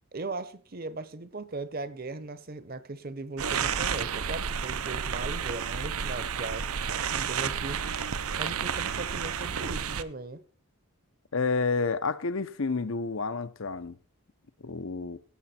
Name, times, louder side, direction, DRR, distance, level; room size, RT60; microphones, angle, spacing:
voice 1, 0.1-6.7 7.1-8.0 8.4-10.4, right 2 dB, 40° right, 0.8 m, -38 dB
sound 1, 3.4-10.0, right 7 dB, 85° right, 0.7 m, -31 dB
voice 2, 11.3-14.0 14.6-15.2, left 4 dB, 65° left, 0.7 m, -29 dB
17.0 x 6.9 x 4.3 m
head